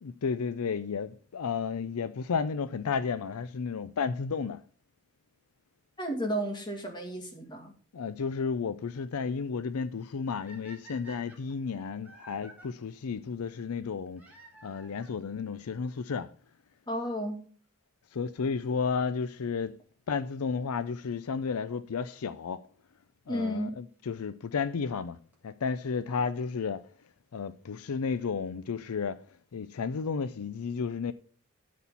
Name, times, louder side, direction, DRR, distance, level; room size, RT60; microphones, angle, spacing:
voice 1, 0.0-4.6 7.9-14.2 14.6-16.3 18.1-19.7 20.1-22.6 23.3-25.2 25.4-26.8 27.3-29.2 29.5-31.1, left 5 dB, 85° left, 0.5 m, -32 dB
voice 2, 6.0-7.7 16.9-17.4 23.3-23.8, right 1 dB, 20° left, 2.1 m, -33 dB
sound 1, 10.5-12.7 14.2-15.2 16.1-16.2 16.9-17.0 17.2-17.3 19.2-19.5 22.3-22.4 23.4-23.5 25.0-25.1 25.3-25.4 25.7-25.8 25.9-26.0 26.2-26.3 26.5-26.6 26.8-26.9, right 2 dB, 5° right, 2.6 m, -53 dB
12.5 x 4.2 x 7.0 m
head